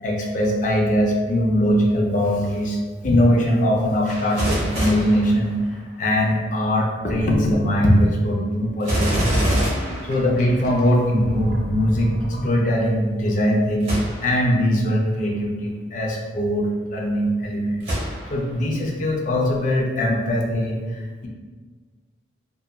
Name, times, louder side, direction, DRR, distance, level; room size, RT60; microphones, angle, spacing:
voice 1, 0.0-2.8 3.0-5.6 6.0-9.6 10.1-12.1 12.4-21.3, equal, 45° left, -1 dB, 0.4 m, -21 dB
Gunshot gunfire, 4.1-6.1 8.8-10.9 13.8-14.5 15.1-15.2 17.8-18.6 19.1-19.2, equal, 35° right, 1.0 m, -25 dB
Sink (filling or washing), 9.3-13.0, right 1 dB, 55° right, 0.5 m, -32 dB
2.8 x 2.3 x 2.3 m, 1.4 s
head